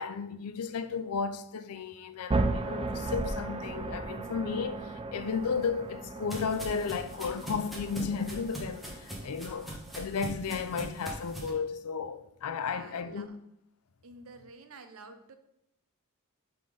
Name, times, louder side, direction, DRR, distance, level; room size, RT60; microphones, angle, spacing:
voice 1, 0.0-13.3, left 5 dB, 80° left, 0.5 m, -34 dB
sound 1, 2.3-10.3, right 2 dB, 25° right, 0.4 m, -36 dB
sound 2, 5.4-11.5, right 1 dB, ahead, 1.2 m, -41 dB
voice 2, 12.6-13.4 14.0-15.3, right 3 dB, 70° right, 0.7 m, -50 dB
5.8 x 3.8 x 5.0 m
head